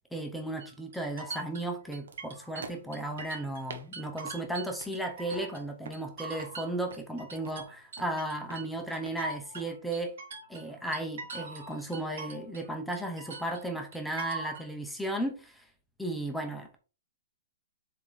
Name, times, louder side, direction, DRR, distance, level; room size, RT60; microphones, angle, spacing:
voice 1, 0.1-10.2 10.5-15.7 16.0-16.8, right 1 dB, ahead, 0.9 m, -35 dB
sound 1, 0.6-3.7 3.9-5.6 5.9-12.7 12.9-14.7, right 4 dB, 65° right, 2.3 m, -42 dB
sound 2, 2.1-9.7, right 4 dB, 80° right, 1.3 m, -50 dB
7.6 x 3.8 x 4.0 m
hypercardioid pair, 175°, 0 cm